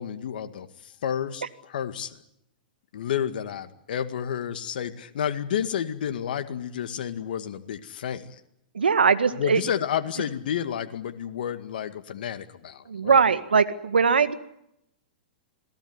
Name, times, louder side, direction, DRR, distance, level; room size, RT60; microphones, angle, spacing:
voice 1, 0.0-2.2 2.9-8.4 9.4-13.2, left 9 dB, 65° left, 8 dB, 2.0 m, -31 dB
voice 2, 8.7-9.6 12.9-14.3, right 5 dB, 85° right, 11 dB, 1.8 m, -21 dB
27.5 x 18.0 x 9.7 m, 0.81 s
hypercardioid pair, 115°, 5 cm